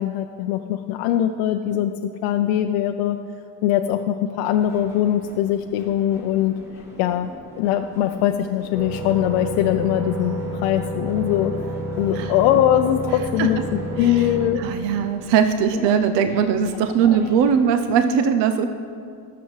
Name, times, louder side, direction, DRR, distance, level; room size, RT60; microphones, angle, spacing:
voice 1, 0.0-1.9 2.2-3.2 3.6-6.5 7.0-11.7 12.0-14.6 17.0-17.2, left 11 dB, 85° left, 5 dB, 0.6 m, -21 dB
sound 1, 4.6-17.6, left 2 dB, 5° right, 1.8 m, -42 dB
sound 2, 8.7-14.5, right 1 dB, 55° right, 2.2 m, -30 dB
voice 2, 14.6-18.7, right 7 dB, 75° right, 9 dB, 0.7 m, -20 dB
19.0 x 6.9 x 3.2 m, 2.3 s
cardioid pair, 125°, 44 cm